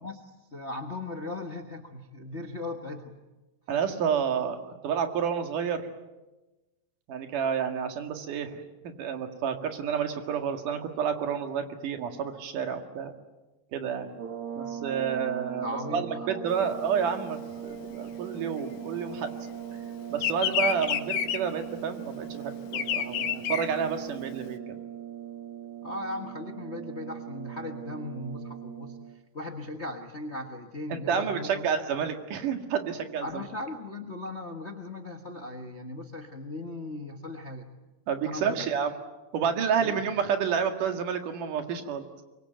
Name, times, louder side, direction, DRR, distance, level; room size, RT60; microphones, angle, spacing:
voice 1, 0.5-3.2 15.6-16.7 25.8-29.0 29.3-31.7 33.2-37.7 38.3-38.6 39.8-40.0, left 2 dB, 40° left, 4 dB, 1.0 m, -38 dB
voice 2, 3.7-5.8 7.1-13.1 13.7-14.1 14.6-19.3 20.1-24.8 30.9-33.4 38.1-38.9 39.3-42.2, right 7 dB, 80° right, 6 dB, 3.4 m, -30 dB
sound 1, 14.1-29.2, right 9 dB, 50° right, 1.0 m, -40 dB
Bird vocalization bird call bird song, 16.6-19.5 19.8-24.5, left 9 dB, 85° left, 3.0 m, -30 dB
24.0 x 23.5 x 9.2 m, 1.1 s
omnidirectional pair, 3.7 m